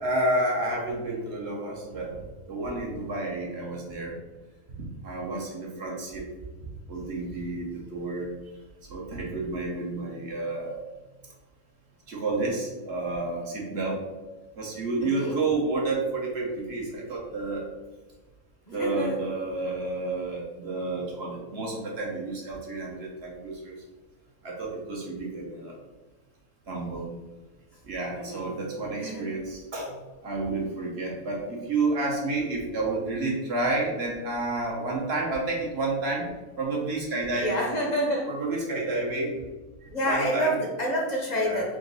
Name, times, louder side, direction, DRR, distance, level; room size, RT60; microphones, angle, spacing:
voice 1, 0.0-2.1 2.5-4.1 5.0-6.2 6.9-8.3 8.9-10.8 12.1-14.0 14.6-17.7 18.7-23.8 24.4-25.7 26.7-27.1 27.9-29.9 30.2-36.3 36.6-37.5 38.3-39.4 40.0-40.6 41.3-41.6, right 2 dB, 50° right, -3 dB, 1.0 m, -30 dB
voice 2, 15.0-15.4 18.7-19.2 28.1-28.5 28.9-29.3 37.4-38.3 39.9-41.8, equal, 40° left, -2 dB, 0.7 m, -28 dB
3.8 x 2.6 x 3.9 m, 1.2 s
omnidirectional pair, 1.5 m